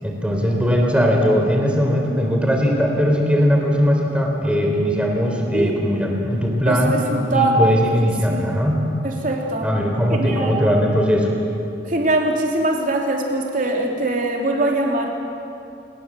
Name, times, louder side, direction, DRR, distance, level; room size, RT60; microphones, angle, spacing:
voice 1, 0.0-6.9 7.3-8.8 9.6-11.3, equal, 5° right, 0 dB, 3.9 m, -19 dB
voice 2, 6.7-7.8 8.3-8.4 9.0-9.7 10.2-10.6 11.9-15.1, right 2 dB, 50° right, 0 dB, 3.1 m, -22 dB
29.5 x 19.0 x 7.6 m, 2.8 s
head